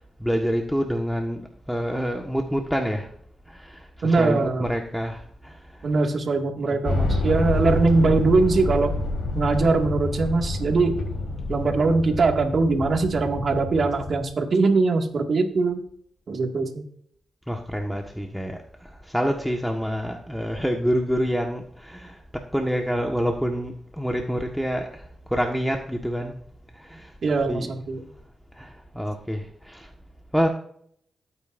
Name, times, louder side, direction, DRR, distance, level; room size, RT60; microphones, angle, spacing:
voice 1, 0.2-3.1 3.5-5.9 6.5-6.8 17.5-26.4 26.7-27.2 27.5-27.8 28.5-29.9 30.3-30.5, equal, ahead, 2 dB, 1.4 m, -27 dB
voice 2, 4.0-4.7 5.8-8.9 9.3-11.0 11.5-15.8 16.3-16.8 27.2-28.0, right 3 dB, 60° right, 3 dB, 2.0 m, -22 dB
sound 1, 6.8-14.2, left 2 dB, 75° left, 3.8 m, -28 dB
17.0 x 8.9 x 2.6 m, 0.65 s
cardioid pair, 55°, 0 cm